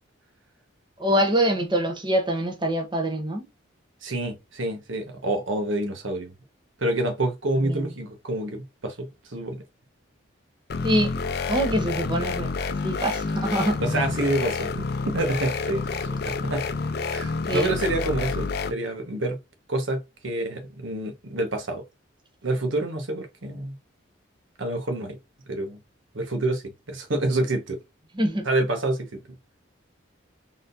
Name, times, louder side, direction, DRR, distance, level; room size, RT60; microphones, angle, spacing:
voice 1, 1.0-3.5 7.6-7.8 10.8-11.1 11.5-12.5 12.8-13.8 17.5-17.7 28.1-28.5, equal, 25° right, 1.0 m, -24 dB
voice 2, 4.0-6.3 6.8-9.6 11.7-11.8 13.8-14.7 15.0-15.9 16.3-16.7 17.1-19.4 19.7-21.8 22.4-23.8 24.6-25.2 25.5-25.8 26.1-27.8 28.4-29.2, right 1 dB, 75° right, 1.3 m, -27 dB
sound 1, 10.7-18.7, left 4 dB, 50° left, 0.4 m, -29 dB
4.1 x 3.7 x 2.6 m
head